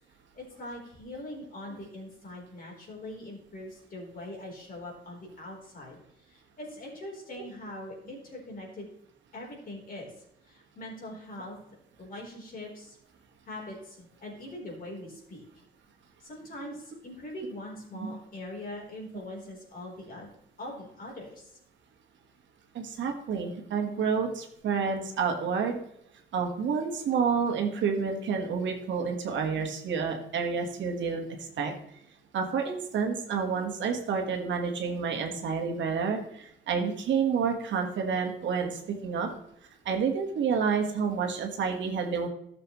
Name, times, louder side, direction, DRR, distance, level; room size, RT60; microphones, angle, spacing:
voice 1, 0.3-8.9 9.3-10.1 10.5-11.6 12.0-13.0 13.5-15.4 16.2-20.3 20.6-21.5, left 1 dB, 45° left, -2 dB, 3.8 m, -42 dB
voice 2, 22.7-25.8 26.3-31.2 31.6-31.7 32.3-39.3 39.8-42.3, right 6 dB, 70° right, 3 dB, 1.5 m, -29 dB
12.5 x 6.8 x 3.1 m, 0.76 s
cardioid pair, 90°, 20 cm